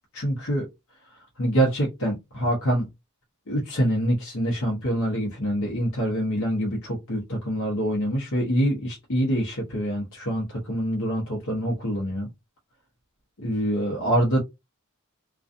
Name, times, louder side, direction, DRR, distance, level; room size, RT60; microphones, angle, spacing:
voice 1, 0.1-0.7 1.4-2.9 3.5-12.3 13.4-14.4, equal, 65° left, 0.8 m, -25 dB
2.4 x 2.3 x 2.5 m
head